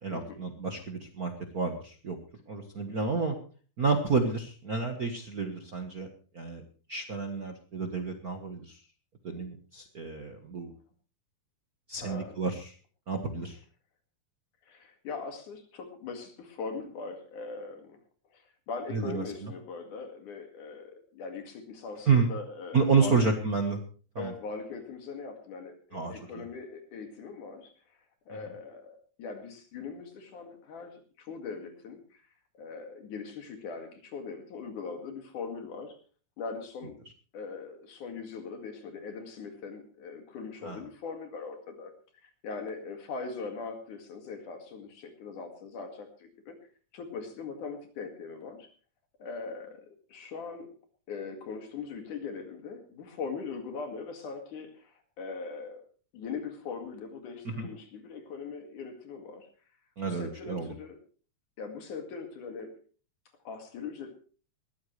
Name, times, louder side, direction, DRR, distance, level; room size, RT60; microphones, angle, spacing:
voice 1, 0.0-2.2 2.5-3.4 3.8-6.1 6.3-6.6 6.9-8.8 9.2-10.7 11.9-12.7 13.1-13.6 18.9-19.5 22.1-22.3 22.7-23.8 24.1-24.3 25.9-26.2 28.3-28.4 40.6-40.8 57.6-57.7 60.0-60.7, right 4 dB, 50° right, 4 dB, 1.1 m, -30 dB
voice 2, 12.0-12.4 14.7-18.0 18.3-23.2 24.2-28.0 28.3-32.2 32.6-36.0 36.4-37.0 37.3-41.9 42.2-46.6 46.9-48.7 49.2-50.7 51.1-55.8 56.1-59.5 60.0-61.0 61.6-62.7 63.5-64.1, left 5 dB, 75° left, 5 dB, 3.6 m, -41 dB
20.0 x 14.5 x 3.2 m, 0.40 s
omnidirectional pair, 3.6 m